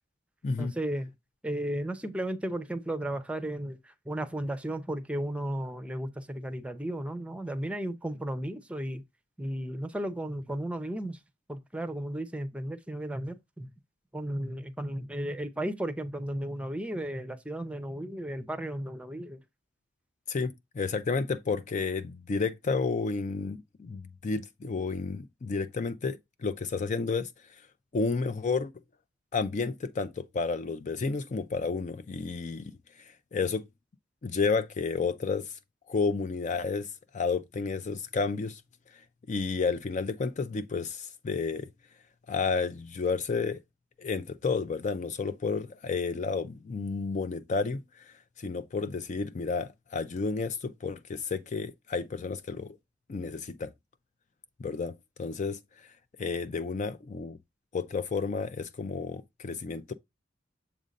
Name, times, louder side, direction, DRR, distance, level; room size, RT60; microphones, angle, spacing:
voice 1, 0.6-1.1 1.4-9.0 9.4-11.2 11.5-13.7 14.1-19.4, right 1 dB, 5° right, 0.6 m, -34 dB
voice 2, 20.3-27.3 27.9-28.7 29.3-33.6 34.2-35.6 35.9-36.9 37.1-38.6 39.3-41.7 42.3-43.6 44.0-52.8 53.1-53.7 54.6-54.9 55.2-55.9 56.2-57.4 57.7-59.9, left 4 dB, 40° left, 0.4 m, -31 dB
7.2 x 2.6 x 5.1 m
head